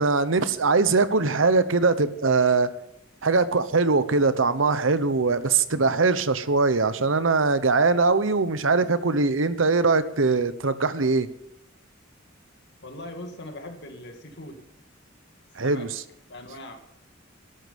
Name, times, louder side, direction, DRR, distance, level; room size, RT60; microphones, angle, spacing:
voice 1, 0.0-2.7 3.2-11.3 15.6-15.9, right 4 dB, 75° right, 13 dB, 0.9 m, -21 dB
voice 2, 12.8-14.6 15.6-15.9 16.3-16.8, left 1 dB, 60° left, 5 dB, 2.2 m, -40 dB
12.5 x 12.5 x 5.2 m, 0.78 s
head